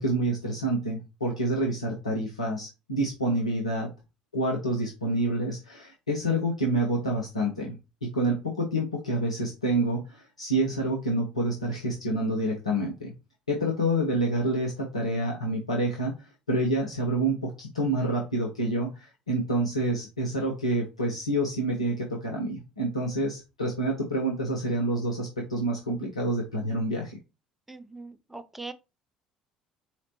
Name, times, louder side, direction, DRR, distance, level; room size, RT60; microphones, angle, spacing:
voice 1, 0.0-3.9 4.3-7.8 8.0-13.1 13.5-27.2, right 1 dB, 85° left, 0.6 m, -28 dB
voice 2, 27.7-28.7, right 3 dB, 5° right, 0.4 m, -41 dB
4.1 x 2.9 x 2.9 m
figure-of-eight pair, 55°, 3 cm